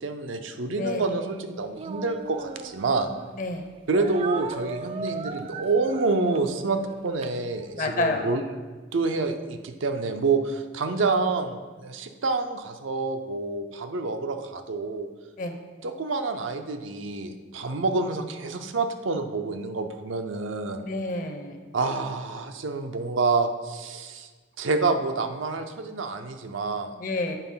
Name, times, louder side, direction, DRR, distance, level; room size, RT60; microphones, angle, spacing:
voice 1, 0.0-3.1 3.9-8.4 8.9-15.1 15.8-20.8 21.7-24.3 24.6-26.9, right 3 dB, 75° right, 6 dB, 0.6 m, -28 dB
Speech, 1.7-3.3 3.9-8.0, right 4 dB, 30° right, 0.3 m, -38 dB
voice 2, 7.7-8.3 15.4-15.5 20.8-21.6 27.0-27.4, left 2 dB, 45° left, 4 dB, 0.8 m, -29 dB
8.2 x 3.9 x 5.6 m, 1.4 s
head